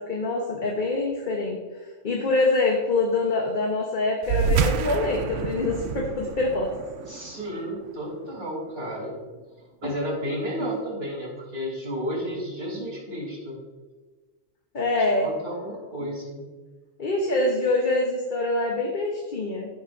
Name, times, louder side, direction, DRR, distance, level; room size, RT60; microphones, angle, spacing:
voice 1, 0.0-1.6 2.0-6.7 9.8-9.9 10.6-10.7 14.7-15.3 16.0-16.1 17.0-19.7, left 2 dB, 45° left, 0 dB, 1.1 m, -25 dB
sound 1, 4.2-9.1, right 6 dB, 85° right, 0.9 m, -29 dB
voice 2, 7.1-9.2 9.8-13.6 15.0-16.4, equal, 55° right, -4 dB, 3.3 m, -32 dB
15.0 x 6.2 x 2.6 m, 1.3 s
omnidirectional pair, 1.2 m